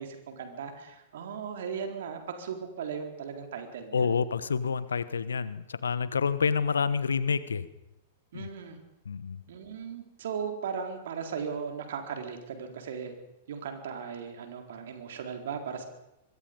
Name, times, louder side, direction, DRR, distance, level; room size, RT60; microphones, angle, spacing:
voice 1, 0.0-4.2 8.3-8.8 9.5-13.1 13.5-15.8, right 6 dB, 60° right, 4 dB, 4.1 m, -37 dB
voice 2, 3.9-7.7 8.3-8.5 9.1-9.4, left 6 dB, 75° left, 15 dB, 1.2 m, -28 dB
25.0 x 21.5 x 5.4 m, 0.92 s
figure-of-eight pair, 100°, 0 cm